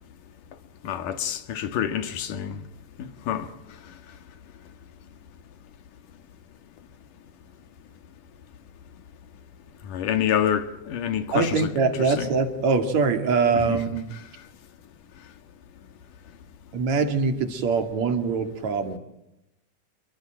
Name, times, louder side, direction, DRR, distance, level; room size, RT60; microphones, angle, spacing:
voice 1, 0.8-2.6 3.0-3.5 9.9-11.6 13.7-13.8, left 9 dB, 90° left, 3.3 m, -27 dB
voice 2, 11.3-14.1 16.7-19.0, right 4 dB, 60° right, 3.5 m, -23 dB
28.0 x 22.5 x 8.9 m
omnidirectional pair, 3.6 m